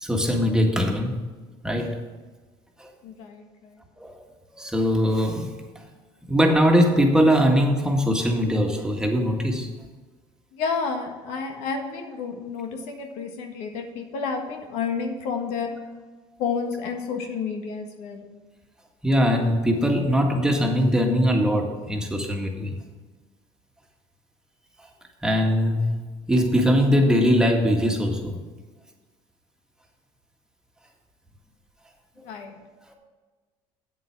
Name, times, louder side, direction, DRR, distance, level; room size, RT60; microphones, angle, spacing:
voice 1, 0.0-1.2 1.6-2.0 2.8-2.9 4.0-4.2 4.5-5.5 5.8-5.9 6.3-9.7 19.0-22.7 25.2-25.9 26.3-28.4 32.9-33.0, equal, 5° right, 2 dB, 1.8 m, -21 dB
voice 2, 3.0-3.8 10.5-15.7 16.4-18.3 32.2-32.6, left 5 dB, 75° left, 4 dB, 1.5 m, -30 dB
8.4 x 7.8 x 6.1 m, 1.3 s
supercardioid pair, 100°, 11 cm